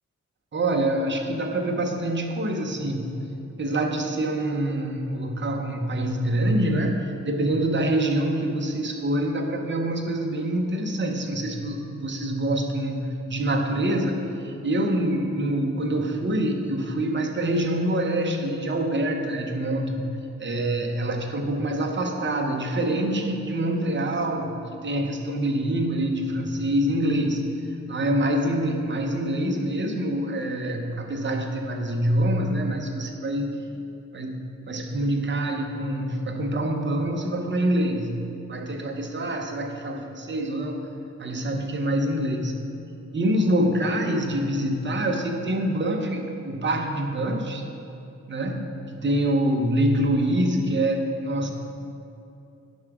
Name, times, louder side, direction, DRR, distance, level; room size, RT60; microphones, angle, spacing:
voice 1, 0.5-3.1 3.6-20.1 20.4-27.5 27.9-33.6 34.1-40.8 41.2-42.6 43.1-47.6 48.3-51.5, right 1 dB, 40° right, 3 dB, 0.8 m, -25 dB
10.5 x 5.9 x 3.6 m, 2.7 s
wide cardioid pair, 125°, 30 cm